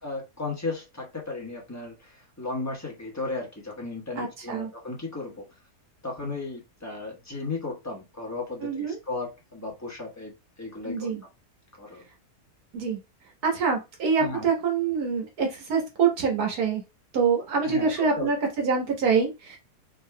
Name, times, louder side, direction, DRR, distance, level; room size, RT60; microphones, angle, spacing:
voice 1, 0.0-5.4 6.0-11.1 11.8-12.0 14.2-14.5 17.6-18.3, left 3 dB, 10° left, -1 dB, 1.1 m, -35 dB
voice 2, 4.2-4.7 8.6-9.0 10.8-11.2 12.7-13.0 13.4-16.8 17.1-19.6, right 5 dB, 70° right, 1 dB, 1.8 m, -25 dB
4.7 x 2.9 x 2.2 m, 0.25 s
omnidirectional pair, 1.7 m